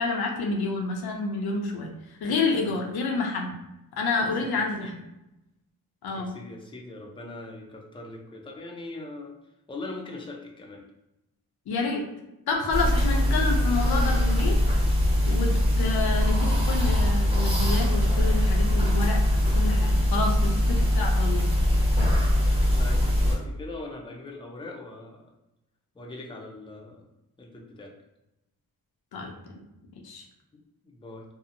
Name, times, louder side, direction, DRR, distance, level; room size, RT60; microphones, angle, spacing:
voice 1, 0.0-1.9 2.2-3.5 4.0-5.0 6.0-6.3 11.7-12.0 12.5-14.6 15.3-15.5 15.8-19.2 19.5-21.5 29.1-29.5 30.0-30.2, left 3 dB, 85° left, 1 dB, 0.6 m, -29 dB
voice 2, 4.5-4.9 6.1-9.3 9.7-10.8 22.4-25.2 25.9-27.0 27.4-27.9 30.5-31.2, left 2 dB, 15° left, 0 dB, 0.5 m, -41 dB
sound 1, 12.7-23.4, left 1 dB, 15° right, 0.9 m, -22 dB
2.7 x 2.0 x 2.5 m, 0.91 s
cardioid pair, 75°, 36 cm